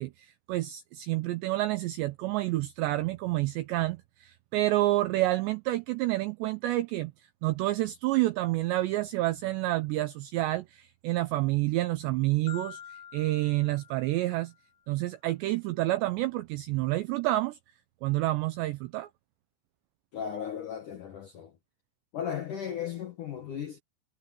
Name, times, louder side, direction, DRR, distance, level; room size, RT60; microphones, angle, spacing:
voice 1, 0.0-7.1 7.4-12.8 13.1-14.5 14.9-17.6 18.0-19.1, right 17 dB, 90° right, 2.5 m, -29 dB
Marimba xylophone, 12.5-14.7, left 8 dB, 30° left, 4.5 m, -47 dB
voice 2, 20.1-21.5 22.1-23.8, left 8 dB, 70° left, 1.9 m, -36 dB
omnidirectional pair, 5.9 m